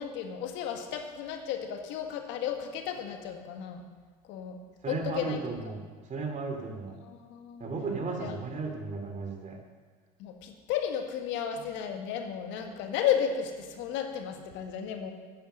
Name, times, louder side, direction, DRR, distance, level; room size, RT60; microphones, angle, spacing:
voice 1, 0.0-3.8 4.3-4.6 4.9-5.6 7.0-7.7 8.2-8.4 10.2-15.1, left 8 dB, 65° left, 5 dB, 1.6 m, -33 dB
voice 2, 4.8-5.8 6.1-7.0 7.6-9.6, right 4 dB, 35° right, 3 dB, 2.8 m, -35 dB
10.5 x 9.4 x 6.5 m, 1.4 s
hypercardioid pair, 80°, 21 cm